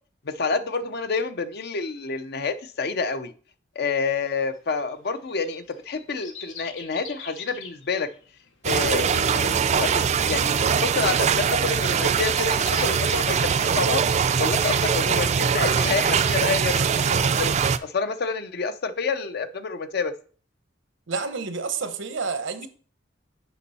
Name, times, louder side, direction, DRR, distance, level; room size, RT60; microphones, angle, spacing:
voice 1, 0.2-3.3 3.8-8.1 8.6-14.0 14.4-16.9 17.4-17.5 17.8-20.1, left 4 dB, 60° left, 0.6 m, -28 dB
sound 1, 4.3-14.3 14.7-14.8, left 6 dB, 85° left, 1.0 m, -43 dB
sound 2, 8.6-17.8, right 7 dB, 35° right, 0.3 m, -22 dB
voice 2, 21.1-22.7, right 4 dB, 85° right, 0.9 m, -29 dB
7.1 x 5.3 x 4.1 m
head